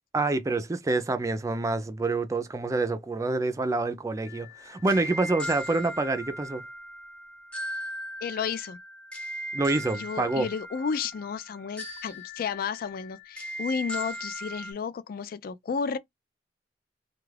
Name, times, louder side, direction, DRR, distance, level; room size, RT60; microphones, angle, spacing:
voice 1, 0.1-6.6 9.5-10.5, right 2 dB, 20° right, 0.4 m, -27 dB
sound 1, 4.3-14.7, equal, 5° left, 0.7 m, -38 dB
voice 2, 8.2-8.8 9.9-16.0, left 6 dB, 55° left, 0.3 m, -32 dB
2.3 x 2.2 x 3.2 m
head